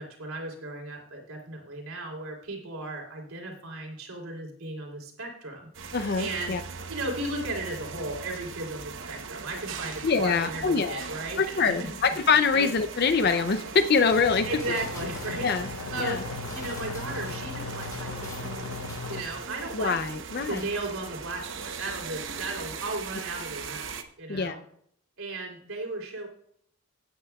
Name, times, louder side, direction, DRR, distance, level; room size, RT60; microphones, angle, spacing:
voice 1, 0.0-5.7 6.2-6.5 6.9-12.0 12.5-12.7 14.4-15.5 15.9-20.0 20.4-24.6 25.2-26.3, right 2 dB, 75° right, 1 dB, 3.2 m, -36 dB
sound 1, 5.7-24.0, right 5 dB, 60° right, 0.9 m, -40 dB
voice 2, 5.9-6.6 10.0-11.0 11.4-14.5 15.4-15.7 16.0-16.2 19.7-20.6 24.3-24.6, left 5 dB, 45° left, 10 dB, 0.5 m, -24 dB
sound 2, 14.1-19.2, left 3 dB, 70° left, 0.8 m, -37 dB
sound 3, 14.1-19.5 19.8-20.3 20.6-20.7, left 1 dB, 15° left, 3.2 m, -48 dB
16.5 x 9.3 x 2.3 m, 0.65 s
head